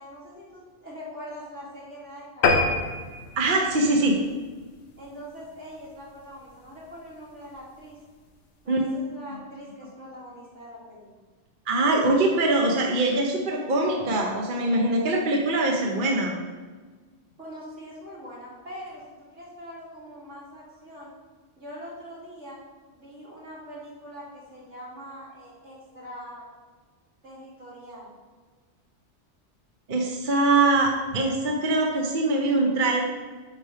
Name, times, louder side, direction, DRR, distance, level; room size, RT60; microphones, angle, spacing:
voice 1, 0.0-2.7 5.0-8.0 8.6-11.1 17.4-19.0 19.3-21.1 21.6-22.6 22.9-26.5 27.2-28.1, equal, 75° right, -7 dB, 3.1 m, -42 dB
sound 1, 2.4-5.2 5.7-5.9 6.3-6.4 6.7-6.8 7.0-7.1, left 3 dB, 65° left, 1.2 m, -26 dB
voice 2, 3.4-4.2 8.7-8.8 11.7-16.4 29.9-33.0, right 2 dB, 45° right, 0 dB, 1.0 m, -23 dB
9.3 x 3.3 x 5.6 m, 1.4 s
omnidirectional pair, 1.2 m